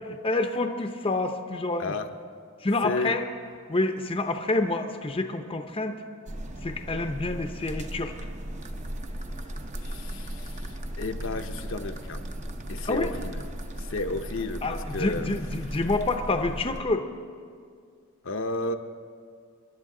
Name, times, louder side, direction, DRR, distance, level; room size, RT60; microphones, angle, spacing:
voice 1, 0.0-1.9 2.6-3.2 3.7-6.0 6.6-8.1 12.9-13.1 14.6-17.1, left 2 dB, 25° left, 6 dB, 0.6 m, -28 dB
voice 2, 1.8-2.1 2.8-3.2 9.8-12.2 12.7-13.4 13.8-15.3 18.2-18.7, left 2 dB, 60° left, 6 dB, 0.7 m, -32 dB
sound 1, 6.3-16.8, right 1 dB, 35° right, 0.7 m, -36 dB
27.5 x 11.0 x 3.8 m, 2.2 s
head